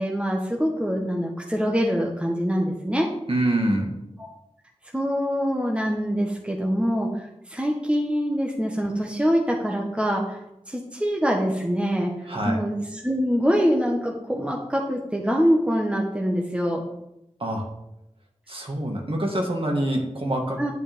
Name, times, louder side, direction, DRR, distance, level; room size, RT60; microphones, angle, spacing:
voice 1, 0.0-3.1 4.2-4.3 4.9-10.4 10.7-12.1 12.4-16.8 20.6-20.7, equal, 10° right, 0 dB, 1.3 m, -24 dB
voice 2, 3.3-3.9 12.3-12.6 17.4-17.7 18.5-20.7, right 1 dB, 50° right, 0 dB, 1.9 m, -25 dB
9.8 x 8.4 x 3.6 m, 0.87 s
wide cardioid pair, 50°, 12 cm